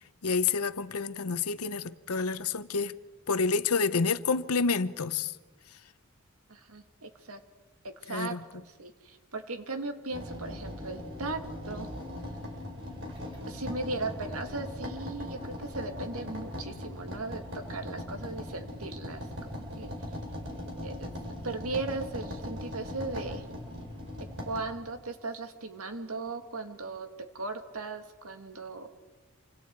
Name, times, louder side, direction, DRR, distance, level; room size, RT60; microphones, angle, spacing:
voice 1, 0.2-2.9 3.3-5.3 8.1-8.4, left 4 dB, 85° left, 0.8 m, -28 dB
voice 2, 6.5-7.4 7.8-11.4 11.7-11.9 13.5-19.9 20.8-23.4 24.5-27.1 27.3-28.9, right 3 dB, 75° right, 2.1 m, -37 dB
sound 1, 10.1-24.6, left 1 dB, 55° right, 4.4 m, -39 dB
27.5 x 25.5 x 4.7 m
head